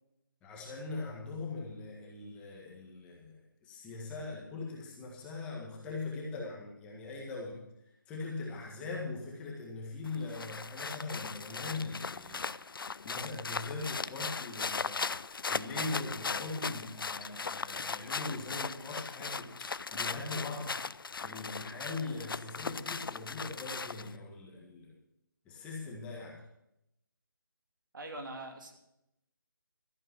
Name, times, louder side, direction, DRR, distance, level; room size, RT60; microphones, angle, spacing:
voice 1, 0.4-7.6 8.1-12.5 13.0-15.1 15.5-20.8 21.2-24.9 25.5-26.4, left 3 dB, 10° left, -3 dB, 1.7 m, -41 dB
sound 1, 10.1-24.2, left 5 dB, 75° left, 0.5 m, -38 dB
voice 2, 27.9-28.7, right 1 dB, 60° right, 3 dB, 2.8 m, -42 dB
13.5 x 10.5 x 6.0 m, 0.82 s
figure-of-eight pair, 165°, 12 cm